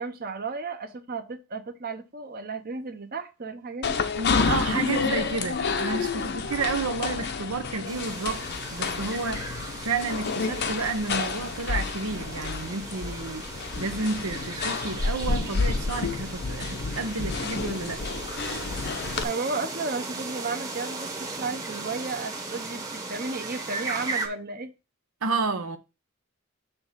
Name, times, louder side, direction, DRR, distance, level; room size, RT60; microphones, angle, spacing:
voice 1, 0.0-4.1 19.2-24.7, right 4 dB, 45° right, 0.9 m, -33 dB
sound 1, 3.8-19.2, left 4 dB, 50° left, 0.7 m, -30 dB
voice 2, 4.2-8.4 8.7-9.5 9.8-13.4 13.8-18.0 25.2-25.8, right 3 dB, 85° right, 0.9 m, -31 dB
sound 2, 7.9-24.3, right 3 dB, 15° right, 1.0 m, -37 dB
6.8 x 3.6 x 5.7 m
head